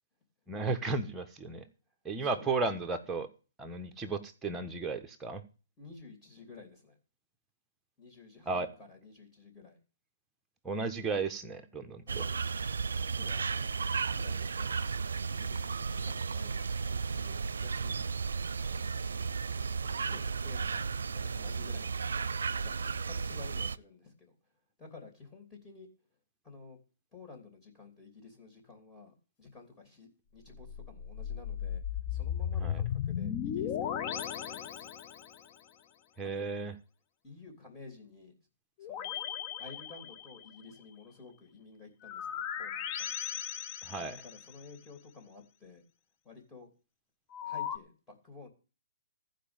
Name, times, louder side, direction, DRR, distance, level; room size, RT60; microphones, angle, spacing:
voice 1, 0.5-1.6 2.0-3.3 3.6-5.4 8.5-8.7 10.6-12.2 32.6-32.8 36.2-36.7 43.8-44.2, right 3 dB, 10° right, 4 dB, 1.3 m, -34 dB
voice 2, 2.2-2.5 5.8-7.0 8.0-9.8 12.1-12.4 12.9-13.7 14.0-14.8 15.3-18.2 18.7-19.3 19.8-22.3 22.6-22.7 23.0-24.3 24.8-25.9 26.4-26.8 27.1-31.8 32.1-34.9 36.4-36.5 37.2-38.3 38.8-39.1 39.6-43.2 44.2-45.8 46.2-46.7 47.4-48.5, left 4 dB, 10° left, 0 dB, 3.1 m, -52 dB
sound 1, 12.1-23.8, right 5 dB, 80° right, 0.5 m, -34 dB
sound 2, 30.4-35.5 38.8-40.6 42.0-44.6 47.3-47.8, left 9 dB, 30° left, 0.8 m, -36 dB
14.0 x 5.2 x 9.0 m, 0.35 s
hypercardioid pair, 145°, 0 cm